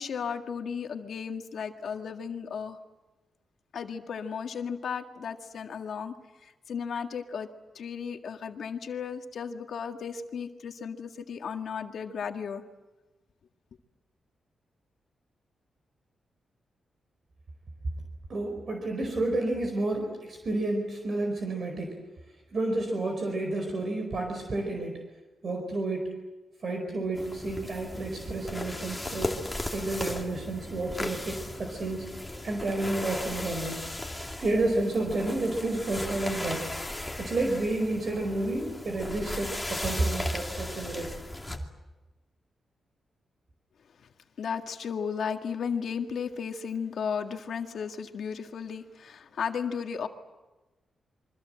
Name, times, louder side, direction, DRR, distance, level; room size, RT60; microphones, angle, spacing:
voice 1, 0.0-2.8 3.7-6.1 6.4-7.5 7.8-12.6 44.4-50.1, left 6 dB, 65° left, 5 dB, 1.9 m, -34 dB
voice 2, 18.3-21.9 22.5-24.9 25.4-26.1 26.6-29.4 29.7-32.1 32.4-33.8 34.4-36.6 37.2-41.1, right 2 dB, 45° right, 3 dB, 4.7 m, -30 dB
sound 1, 27.2-41.6, left 1 dB, 10° left, 2.6 m, -37 dB
28.0 x 24.0 x 7.7 m, 1.1 s
wide cardioid pair, 160°, 0 cm